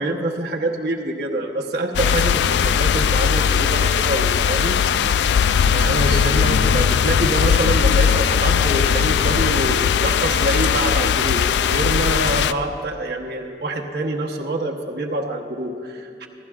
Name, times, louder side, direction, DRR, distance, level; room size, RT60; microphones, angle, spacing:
voice 1, 0.0-4.8 5.1-5.2 5.7-16.3, right 1 dB, 65° right, 1 dB, 1.0 m, -26 dB
sound 1, 1.9-12.5, left 7 dB, 75° left, 0.3 m, -19 dB
28.0 x 12.0 x 2.4 m, 2.5 s
head